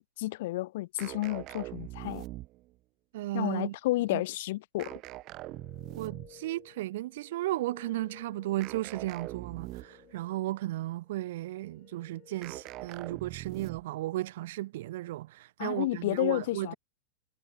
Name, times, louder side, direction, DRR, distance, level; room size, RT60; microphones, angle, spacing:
voice 1, 0.0-2.2 3.3-4.9 15.6-16.8, left 17 dB, 55° left, 0.7 m, -31 dB
sound 1, 1.0-2.8 4.8-6.5 8.6-10.1 12.4-14.0, right 18 dB, 40° right, 1.0 m, -42 dB
voice 2, 3.1-3.7 4.1-4.2 6.0-16.7, right 16 dB, 55° right, 0.3 m, -35 dB
sound 2, 5.2-13.0, left 14 dB, 35° left, 6.3 m, -58 dB
figure-of-eight pair, 90°, 0 cm